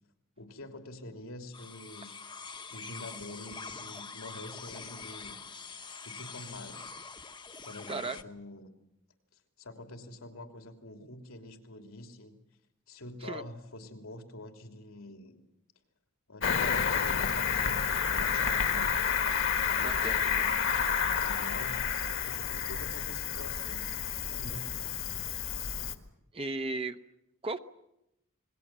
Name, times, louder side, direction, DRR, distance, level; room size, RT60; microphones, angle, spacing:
voice 1, 0.4-2.1 2.7-5.4 6.0-6.8 7.6-8.7 9.6-12.4 12.9-15.4 16.3-19.0 19.7-20.7 21.0-23.9 24.3-25.3, left 2 dB, 90° left, 4 dB, 3.1 m, -46 dB
sound 1, 1.5-8.2, left 5 dB, 25° left, 1.0 m, -44 dB
Cricket, 16.4-25.9, left 7 dB, 65° left, 1.7 m, -30 dB
voice 2, 19.8-20.2 26.3-27.0 27.4-27.6, right 3 dB, 30° right, 8 dB, 0.8 m, -35 dB
28.0 x 21.0 x 7.5 m, 0.86 s
head